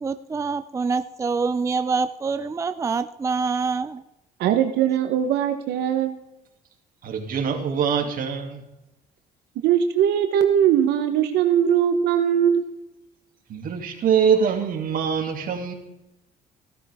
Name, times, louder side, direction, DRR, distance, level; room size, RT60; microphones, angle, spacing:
voice 1, 0.0-4.0, right 4 dB, 20° right, 11 dB, 0.4 m, -25 dB
voice 2, 4.4-6.2 9.6-12.7, right 9 dB, 80° right, 7 dB, 1.1 m, -20 dB
voice 3, 7.0-8.6 13.5-15.7, right 7 dB, 55° right, 3 dB, 2.6 m, -23 dB
16.0 x 12.0 x 3.6 m, 0.92 s
cardioid pair, 110°, 17 cm